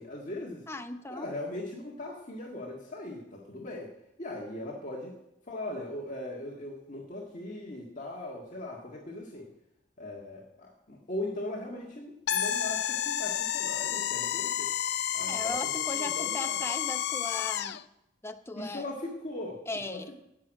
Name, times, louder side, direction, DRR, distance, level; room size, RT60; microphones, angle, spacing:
voice 1, 0.0-0.6 1.1-3.9 4.2-5.2 5.5-9.5 10.0-14.7 15.1-16.7 18.6-19.6 19.9-20.1, left 1 dB, 40° left, -3 dB, 1.7 m, -39 dB
voice 2, 0.7-1.3 15.3-17.8 18.2-18.9 19.7-20.1, left 2 dB, 15° left, 7 dB, 0.8 m, -38 dB
sound 1, 12.3-17.8, left 10 dB, 60° left, 0.4 m, -30 dB
17.0 x 6.2 x 6.4 m, 0.86 s
head